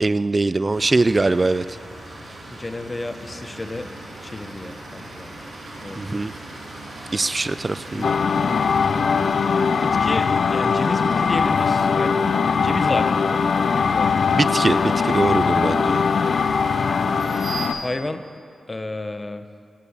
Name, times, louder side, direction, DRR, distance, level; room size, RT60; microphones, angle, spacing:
voice 1, 0.0-1.7 2.3-2.4 6.0-6.3 7.1-8.1 14.3-16.0, right 3 dB, 35° right, 15 dB, 0.3 m, -22 dB
sound 1, 0.7-17.7, right 1 dB, 85° right, 3.5 m, -37 dB
voice 2, 2.5-5.3 5.8-6.2 7.9-8.1 9.8-12.2 12.6-13.4 13.7-14.4 17.8-18.2 18.7-19.4, left 2 dB, 30° left, 9 dB, 0.9 m, -31 dB
sound 2, 8.0-17.8, left 6 dB, 75° left, 0.3 m, -21 dB
18.0 x 8.3 x 7.1 m, 2.3 s
cardioid pair, 60°, 0 cm